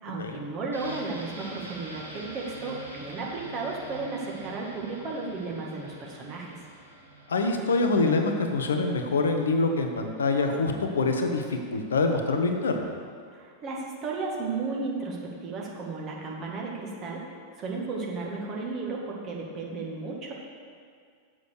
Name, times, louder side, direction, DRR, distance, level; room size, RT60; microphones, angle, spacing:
voice 1, 0.0-6.6 13.3-17.3 17.6-20.3, right 3 dB, 35° right, -2 dB, 1.7 m, -34 dB
sound 1, 0.7-10.4 10.7-10.8, right 1 dB, 90° left, 1.7 m, -46 dB
voice 2, 7.3-12.9, left 3 dB, 70° left, 4 dB, 0.8 m, -25 dB
7.2 x 6.3 x 6.5 m, 2.1 s
figure-of-eight pair, 90°, 0 cm